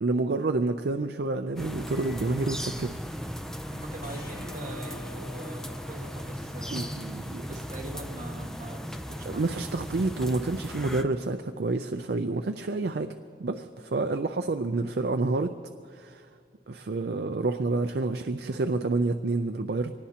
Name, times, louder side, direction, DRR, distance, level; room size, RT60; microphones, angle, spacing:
voice 1, 0.0-3.0 6.7-7.5 9.3-13.1 13.4-15.5 15.9-16.3 16.7-19.9, right 3 dB, 60° right, 7 dB, 0.5 m, -28 dB
sound 1, 1.6-11.0, equal, 5° left, 0.5 m, -37 dB
sound 2, 1.9-2.8 4.0-6.8, left 3 dB, 55° left, 1.5 m, -48 dB
voice 2, 3.7-9.4, right 2 dB, 45° right, 0 dB, 1.7 m, -43 dB
24.5 x 19.0 x 2.9 m, 2.2 s
head